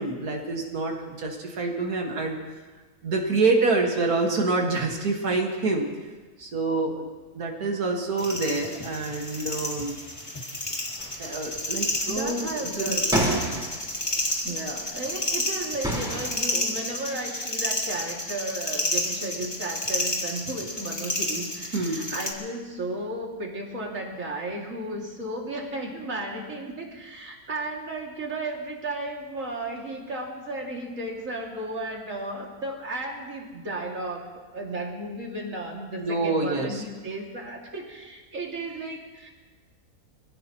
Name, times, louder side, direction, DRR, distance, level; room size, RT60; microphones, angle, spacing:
voice 1, 0.0-2.4 3.0-5.9 6.4-7.1 7.3-10.0 11.2-13.0 21.7-22.1 36.0-36.8, right 3 dB, 75° right, 1 dB, 2.3 m, -27 dB
sound 1, 8.2-22.3, left 1 dB, 20° left, 2.0 m, -30 dB
sound 2, 11.0-14.5 15.3-15.4 15.8-16.4, right 1 dB, 5° right, 4.1 m, -29 dB
voice 2, 12.1-13.6 14.4-39.3, right 2 dB, 55° right, -1 dB, 2.8 m, -34 dB
25.0 x 16.5 x 3.0 m, 1.3 s
omnidirectional pair, 1.6 m